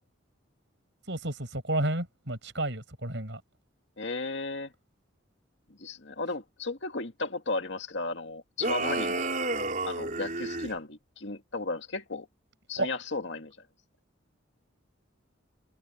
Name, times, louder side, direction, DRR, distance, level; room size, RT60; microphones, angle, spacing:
voice 1, 1.1-3.4 12.8-12.9, right 1 dB, 60° right, 7.2 m, -31 dB
voice 2, 4.0-4.7 5.8-9.2 9.9-12.3 12.7-13.6, left 3 dB, 65° left, 2.1 m, -34 dB
sound 1, 8.6-10.7, right 2 dB, 40° right, 4.3 m, -31 dB
head